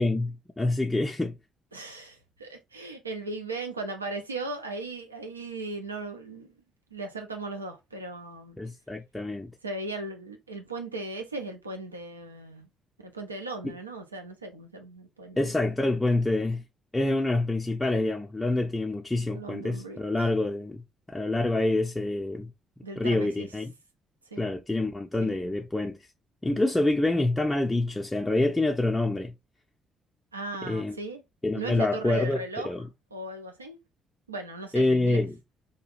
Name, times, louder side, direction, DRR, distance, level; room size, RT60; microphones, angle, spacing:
voice 1, 0.0-1.4 8.6-9.5 13.6-13.7 15.4-16.6 16.9-20.8 21.1-22.5 23.0-23.7 24.4-26.0 26.4-29.3 30.6-31.0 31.4-32.9 34.7-35.3, left 2 dB, 15° left, 0.5 m, -26 dB
voice 2, 1.7-6.5 6.9-8.6 9.6-12.7 13.0-15.5 19.3-20.0 22.8-23.5 24.3-24.5 25.2-25.4 30.3-31.2 31.5-32.7 33.1-33.8 34.3-35.2, right 2 dB, 85° right, 0.4 m, -37 dB
2.9 x 2.3 x 3.0 m
figure-of-eight pair, 45°, 0 cm